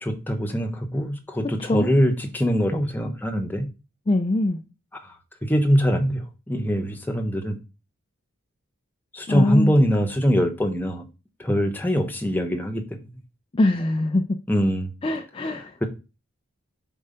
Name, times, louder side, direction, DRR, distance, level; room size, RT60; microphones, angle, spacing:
voice 1, 0.0-3.7 5.0-5.1 5.4-7.6 9.1-11.0 11.4-13.0 14.5-14.9, equal, 10° left, 0.8 m, -23 dB
voice 2, 4.1-4.6 9.3-9.8 13.5-14.2 15.0-15.8, left 2 dB, 25° left, 0.4 m, -22 dB
5.5 x 4.4 x 5.0 m
head